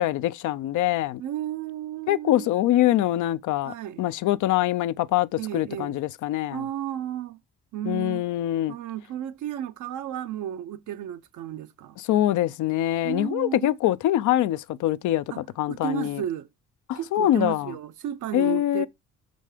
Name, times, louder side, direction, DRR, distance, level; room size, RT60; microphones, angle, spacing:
voice 1, 0.0-1.2 2.1-6.6 7.8-8.7 12.1-16.2 16.9-17.7 18.3-18.9, left 13 dB, 75° left, 0.5 m, -24 dB
voice 2, 1.2-2.5 3.6-4.1 5.4-6.0 6.5-7.4 7.7-8.3 8.7-12.0 13.0-13.8 15.3-15.4 15.7-16.5 17.0-18.9, right 10 dB, 80° right, 0.8 m, -33 dB
6.5 x 5.3 x 4.9 m
cardioid pair, 90°, 30 cm